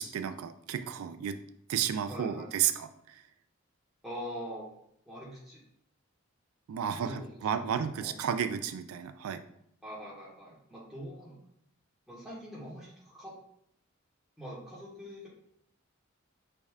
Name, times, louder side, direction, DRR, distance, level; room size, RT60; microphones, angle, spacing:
voice 1, 0.0-1.4 1.7-3.2 6.7-9.4, right 8 dB, 90° right, 10 dB, 0.3 m, -32 dB
voice 2, 2.1-2.5 4.0-4.7 5.0-5.6 6.8-7.3 7.6-8.2 9.8-11.4 12.1-13.4 14.4-15.3, equal, ahead, -7 dB, 1.3 m, -43 dB
5.2 x 3.4 x 2.4 m, 0.74 s
head